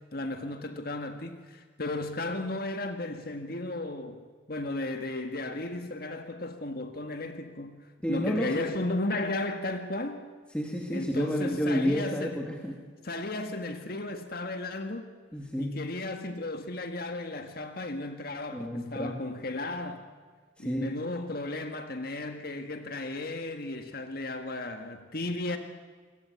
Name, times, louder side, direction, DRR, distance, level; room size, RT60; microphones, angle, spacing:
voice 1, 0.1-4.2 4.5-10.3 10.9-12.5 13.0-15.1 15.6-20.1 20.6-25.6, left 2 dB, 55° left, 1.8 m, -34 dB
voice 2, 8.0-8.6 10.5-12.8 15.3-15.8 18.5-19.2 20.6-20.9, equal, 5° left, 2.7 m, -30 dB
28.0 x 23.0 x 8.4 m
head